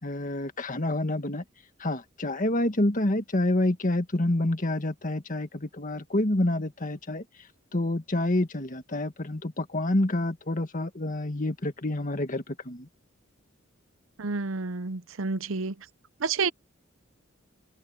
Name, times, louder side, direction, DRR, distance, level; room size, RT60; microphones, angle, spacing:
voice 1, 0.0-1.4 1.8-7.2 7.7-12.9, left 1 dB, 40° left, 1.7 m, -28 dB
voice 2, 14.2-15.7 16.2-16.5, right 4 dB, 75° right, 0.7 m, -29 dB
head